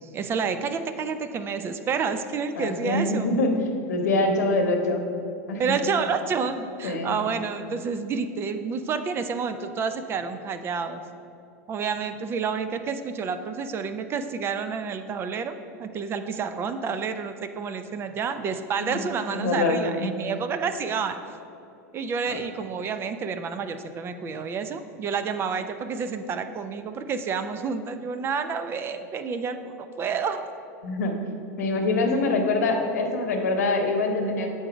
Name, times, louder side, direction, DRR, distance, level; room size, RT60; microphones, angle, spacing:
voice 1, 0.0-3.4 5.6-11.0 11.7-21.2 21.9-30.4 32.1-32.3, right 5 dB, 30° right, 9 dB, 0.4 m, -29 dB
voice 2, 2.6-3.5 3.9-5.0 5.5-5.8 6.8-7.2 18.8-20.1 22.3-22.4 30.8-31.1 31.6-34.5, left 2 dB, 90° left, 4 dB, 0.9 m, -25 dB
7.9 x 3.9 x 4.9 m, 2.6 s
supercardioid pair, 120°, 9 cm